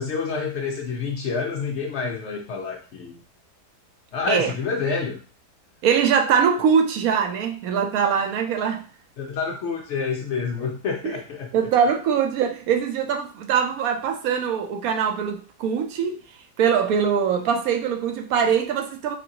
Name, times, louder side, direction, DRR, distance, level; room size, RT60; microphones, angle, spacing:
voice 1, 0.0-3.2 4.1-5.2 9.2-11.5, left 5 dB, 70° left, 0.6 m, -28 dB
voice 2, 5.8-8.8 11.0-11.2 11.5-16.2 16.6-19.2, right 7 dB, 70° right, 0.9 m, -22 dB
4.0 x 3.3 x 2.8 m
omnidirectional pair, 1.8 m